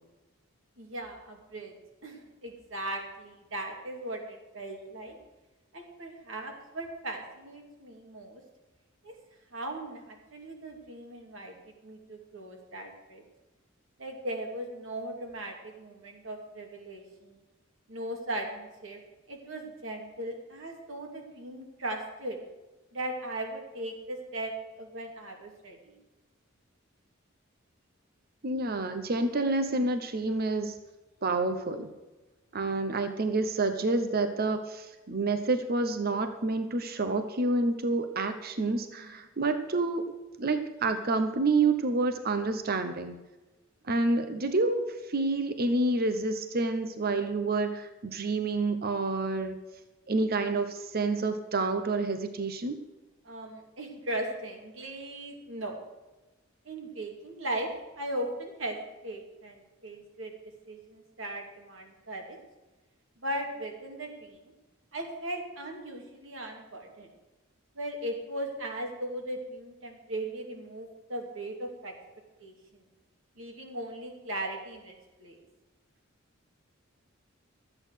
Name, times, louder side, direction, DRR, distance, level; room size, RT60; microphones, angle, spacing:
voice 1, 0.8-1.7 2.0-5.2 5.7-8.4 9.0-9.1 9.5-11.5 11.8-13.2 14.0-17.4 17.9-19.0 19.3-22.4 22.9-26.0 39.0-39.2 53.2-55.8 56.6-57.7 57.9-58.8 59.0-60.3 60.7-62.4 63.2-64.4 64.9-67.1 67.7-71.9 72.4-72.8 73.4-74.9 75.2-75.4, right 1 dB, 70° right, 2 dB, 2.5 m, -38 dB
voice 2, 28.4-30.7 31.2-31.9 32.5-40.1 40.4-43.2 43.8-49.6 50.1-52.8, right 3 dB, 50° right, 8 dB, 0.9 m, -28 dB
13.0 x 8.6 x 6.4 m, 1.1 s
head